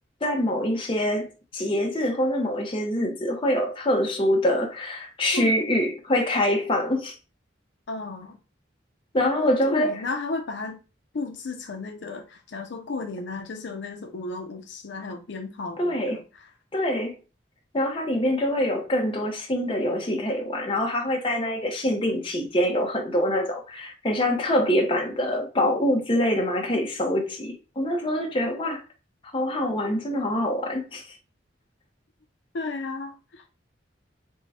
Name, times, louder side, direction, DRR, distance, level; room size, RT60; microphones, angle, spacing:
voice 1, 0.2-7.2 9.1-10.0 15.8-16.2 16.7-17.2 17.7-28.8 29.3-31.1, left 1 dB, 30° left, 0.7 m, -25 dB
voice 2, 5.3-5.8 7.9-8.4 9.4-10.8 11.1-16.5 32.5-33.4, left 3 dB, 65° left, 0.5 m, -34 dB
3.6 x 2.1 x 4.1 m
head